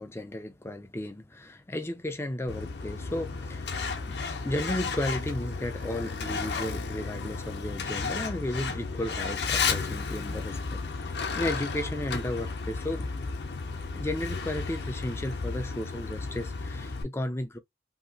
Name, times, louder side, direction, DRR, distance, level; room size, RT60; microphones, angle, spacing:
voice 1, 0.0-13.1 13.9-17.6, left 1 dB, 15° left, 0.4 m, -34 dB
Truck, 2.5-17.0, left 4 dB, 60° left, 0.6 m, -33 dB
2.7 x 2.7 x 2.7 m
head